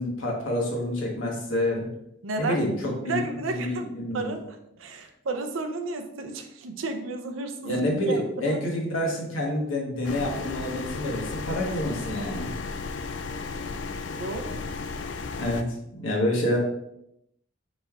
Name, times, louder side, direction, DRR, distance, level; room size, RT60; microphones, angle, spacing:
voice 1, 0.0-1.9 2.4-3.2 3.5-4.3 7.6-12.8 15.4-15.7 15.9-16.6, left 1 dB, 85° left, -1 dB, 1.2 m, -28 dB
voice 2, 2.2-2.6 3.0-8.6 14.2-14.6, right 3 dB, 85° right, 6 dB, 0.6 m, -33 dB
sound 1, 10.0-15.6, left 4 dB, 60° left, 0.3 m, -34 dB
5.1 x 4.1 x 2.4 m, 0.80 s
head